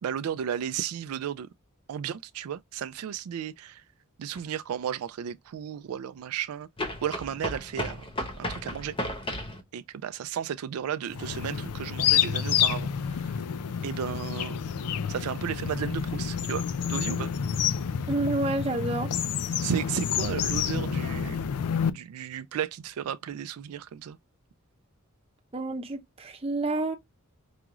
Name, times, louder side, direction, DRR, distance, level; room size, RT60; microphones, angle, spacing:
voice 1, 0.0-1.5 1.9-3.8 4.2-6.7 7.0-8.9 9.7-13.3 13.8-14.6 15.1-17.3 19.6-21.4 21.9-24.2, right 9 dB, 75° right, 0.3 m, -34 dB
sound 1, 4.3-4.4 6.8-9.6, left 1 dB, 25° left, 0.7 m, -34 dB
sound 2, 11.1-21.9, left 8 dB, 85° left, 0.4 m, -29 dB
voice 2, 18.1-19.1 25.5-27.0, right 2 dB, 25° right, 0.8 m, -29 dB
4.8 x 2.3 x 2.9 m
head